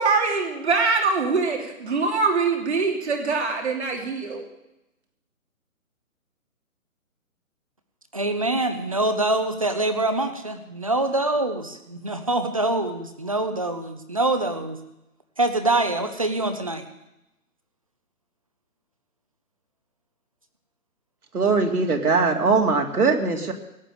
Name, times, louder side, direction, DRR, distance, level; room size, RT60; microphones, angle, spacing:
voice 1, 0.0-4.4, right 4 dB, 50° right, 1 dB, 3.1 m, -23 dB
voice 2, 8.1-14.8 15.4-16.8, right 2 dB, 25° right, 8 dB, 0.8 m, -25 dB
voice 3, 21.3-23.5, right 4 dB, 85° right, 3 dB, 2.6 m, -21 dB
17.5 x 6.6 x 9.2 m, 0.90 s
hypercardioid pair, 175°, 43 cm